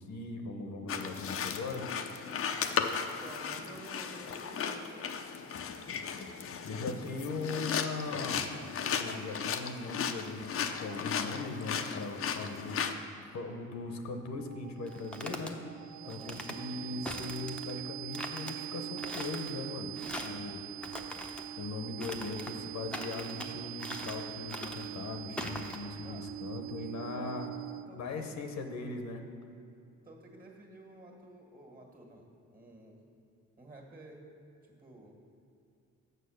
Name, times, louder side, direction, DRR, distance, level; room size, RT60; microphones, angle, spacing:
voice 1, 0.0-1.9 6.6-12.9 13.3-15.6 16.0-20.6 21.6-27.5 28.0-29.3, left 3 dB, 65° left, 5 dB, 0.9 m, -39 dB
sound 1, 0.9-12.9, left 6 dB, 50° left, 0.6 m, -36 dB
voice 2, 3.1-5.1 16.0-16.5 26.0-26.3 26.7-27.5 27.9-28.4 30.0-33.0 33.6-34.3 34.6-35.2, right 2 dB, 30° right, 1 dB, 1.8 m, -51 dB
sound 2, 14.2-28.1, right 14 dB, 80° right, 0.5 m, -43 dB
sound 3, 14.9-15.5 16.1-16.6 17.1-17.7 18.1-18.5 19.0-19.5 19.9-20.4 20.8-21.5 22.0-22.6 22.9-23.5 23.8-24.2 24.5-24.9 25.4-25.8, left 1 dB, 5° left, 0.8 m, -41 dB
6.8 x 6.3 x 6.5 m, 2.7 s
cardioid pair, 90°, 30 cm